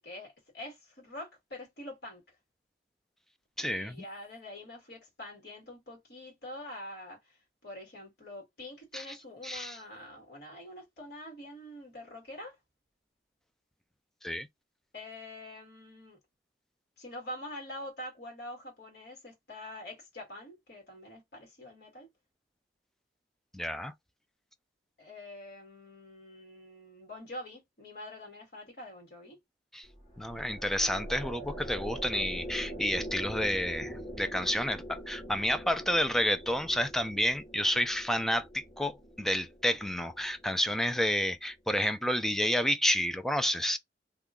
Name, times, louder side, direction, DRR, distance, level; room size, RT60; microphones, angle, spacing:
voice 1, 0.0-2.4 3.6-12.6 14.9-16.2 17.0-22.1 25.0-29.4, left 1 dB, 65° left, 1.7 m, -45 dB
voice 2, 3.6-4.0 8.9-9.1 9.4-9.8 14.2-14.5 23.5-23.9 29.7-29.9 30.2-43.8, equal, ahead, 0.3 m, -30 dB
sound 1, 29.9-41.3, equal, 35° left, 1.4 m, -43 dB
2.9 x 2.2 x 3.6 m
head